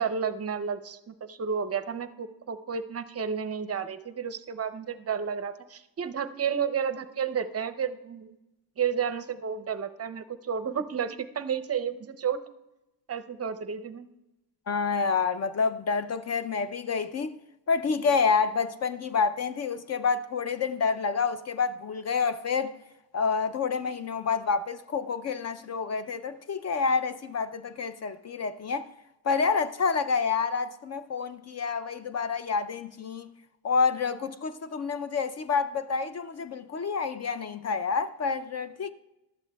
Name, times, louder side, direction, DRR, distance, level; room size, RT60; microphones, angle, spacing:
voice 1, 0.0-8.4 8.8-12.4 13.1-14.1, right 7 dB, 35° right, 0.6 m, -31 dB
voice 2, 14.7-17.3 17.7-22.7 23.1-28.9 29.2-33.3 33.6-38.9, left 5 dB, 40° left, 0.5 m, -28 dB
18.5 x 12.5 x 2.3 m
cardioid pair, 115°, 43 cm